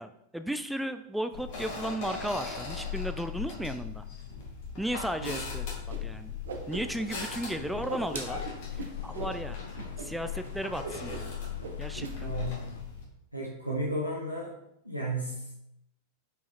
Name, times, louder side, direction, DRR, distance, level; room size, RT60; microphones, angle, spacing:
voice 1, 0.0-4.0 4.8-5.7 6.0-6.3 6.7-8.4 8.7-9.6 10.0-11.3 11.8-12.3, right 1 dB, 5° right, 9 dB, 0.4 m, -35 dB
sound 1, 1.3-13.0, left 6 dB, 50° left, 2.1 m, -38 dB
Whoosh swoosh swish, 5.9-6.0 6.3-7.2 7.5-9.3 9.7-10.1 10.3-10.5 10.8-11.3 11.6-12.1, right 4 dB, 65° right, 0.9 m, -39 dB
sound 2, 7.2-12.8, left 7 dB, 65° left, 0.5 m, -49 dB
voice 2, 12.2-12.7 13.3-14.5 14.8-15.6, right 1 dB, 90° left, -5 dB, 1.2 m, -33 dB
5.7 x 4.7 x 4.2 m, 0.83 s
figure-of-eight pair, 90°, 0 cm